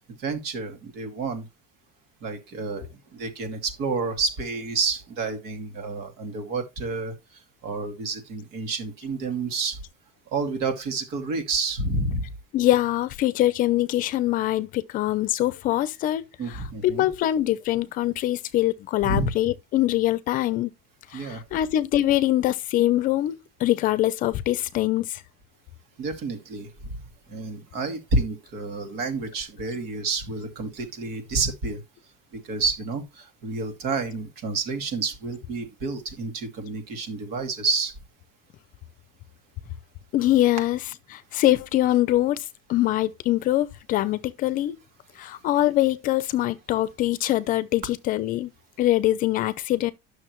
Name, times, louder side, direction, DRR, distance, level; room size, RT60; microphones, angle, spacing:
voice 1, 0.0-1.5 2.2-7.1 7.6-9.8 10.3-12.3 16.4-17.1 19.0-19.3 21.1-21.4 26.0-27.0 27.3-31.8 32.4-37.9, right 3 dB, 55° right, 2.4 m, -29 dB
voice 2, 12.5-20.7 21.1-25.2 40.1-40.8 41.1-42.4 42.7-44.8 45.2-48.5 48.8-49.9, left 14 dB, 45° left, 0.7 m, -23 dB
11.5 x 6.5 x 3.1 m
cardioid pair, 170°, 20 cm